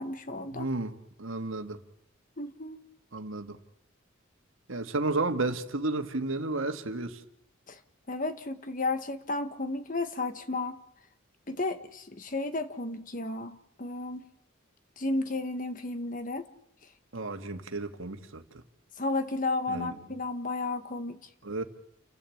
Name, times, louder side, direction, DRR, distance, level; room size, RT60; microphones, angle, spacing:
voice 1, 0.0-0.7 2.4-2.8 7.7-7.8 8.1-10.8 11.5-14.3 15.0-16.5 19.0-21.2, left 2 dB, 40° left, 1.6 m, -33 dB
voice 2, 0.5-1.8 3.1-3.6 4.7-7.2 17.1-18.6 19.7-20.0 21.4-21.6, right 2 dB, 75° right, 2.0 m, -32 dB
30.0 x 14.0 x 8.7 m
head